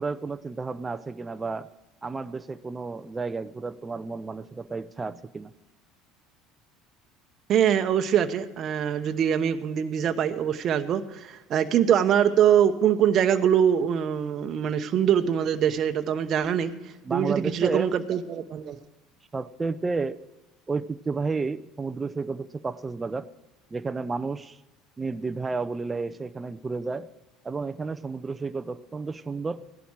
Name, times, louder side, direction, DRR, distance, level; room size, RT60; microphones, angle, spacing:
voice 1, 0.0-1.7 2.0-5.5 17.0-17.9 19.3-20.2 20.7-23.3 23.7-24.6 25.0-27.1 27.4-29.7, right 4 dB, 20° right, 10 dB, 0.6 m, -31 dB
voice 2, 7.5-16.7 17.1-18.8, right 9 dB, 50° right, 7 dB, 0.9 m, -23 dB
16.5 x 11.5 x 4.6 m, 1.1 s
hypercardioid pair, 75°, 0 cm